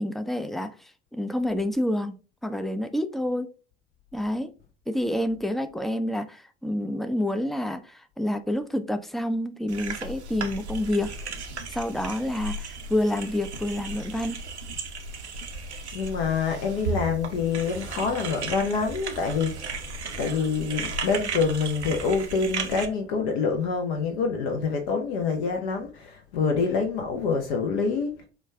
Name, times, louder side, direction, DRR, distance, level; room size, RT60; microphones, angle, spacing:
voice 1, 0.0-2.2 2.4-3.5 4.1-4.5 4.9-11.1 11.7-14.4, left 1 dB, ahead, 0.3 m, -28 dB
sound 1, 9.7-22.8, right 3 dB, 90° right, 0.6 m, -35 dB
voice 2, 15.9-19.7 20.2-28.2, left 5 dB, 65° left, 0.7 m, -26 dB
5.1 x 2.3 x 3.4 m
figure-of-eight pair, 60°, 33 cm